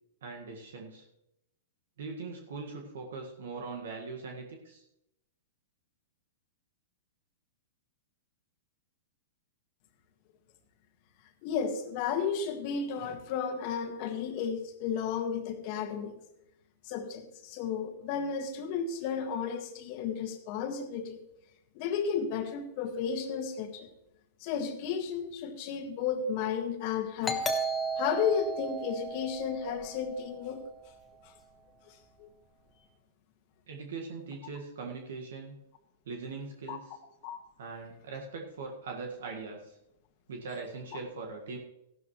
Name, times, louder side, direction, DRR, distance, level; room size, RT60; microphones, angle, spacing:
voice 1, 0.2-1.1 2.0-4.8 33.7-35.6 36.0-37.0 37.6-39.8 40.3-41.6, right 4 dB, 70° right, 1 dB, 1.7 m, -41 dB
voice 2, 11.4-16.2 16.8-21.2 21.7-23.9 24.4-27.4 28.0-30.6 31.2-31.3 32.2-32.3 36.7-36.8 37.2-37.4, left 7 dB, 50° left, 7 dB, 1.6 m, -33 dB
Doorbell, 27.2-30.6, right 3 dB, 15° left, 1.2 m, -34 dB
14.5 x 11.5 x 3.2 m, 0.87 s
hypercardioid pair, 110°, 0 cm